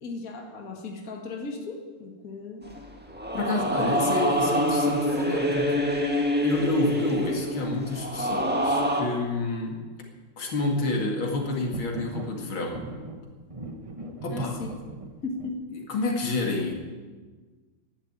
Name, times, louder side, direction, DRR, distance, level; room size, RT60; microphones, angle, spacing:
voice 1, 0.0-2.7 14.3-14.7 15.2-15.6, left 3 dB, 45° left, 1 dB, 2.3 m, -36 dB
sound 1, 2.7-9.0, equal, 5° right, 1.5 m, -26 dB
voice 2, 3.3-5.9 6.4-9.8 10.4-12.8 14.2-14.6 15.7-16.7, left 2 dB, 75° left, 1 dB, 2.9 m, -29 dB
sound 2, 11.7-12.4 12.7-15.5, right 2 dB, 45° right, 0.4 m, -38 dB
11.5 x 11.5 x 9.0 m, 1.4 s
omnidirectional pair, 2.3 m